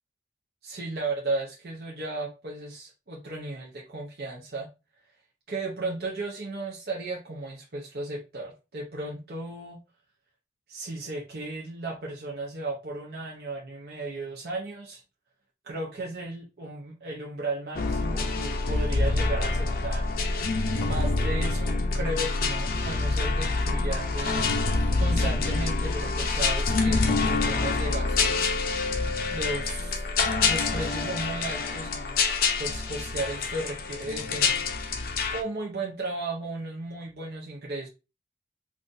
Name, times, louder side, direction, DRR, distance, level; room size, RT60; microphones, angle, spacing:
voice 1, 0.6-4.7 5.5-9.8 10.7-15.0 15.6-20.0 20.8-24.5 25.0-28.6 29.3-30.0 30.4-32.2 32.6-34.6 35.3-37.9, right 2 dB, 60° right, 0.7 m, -35 dB
sound 1, 17.8-35.4, left 3 dB, 55° left, 0.5 m, -26 dB
3.9 x 2.4 x 2.5 m
head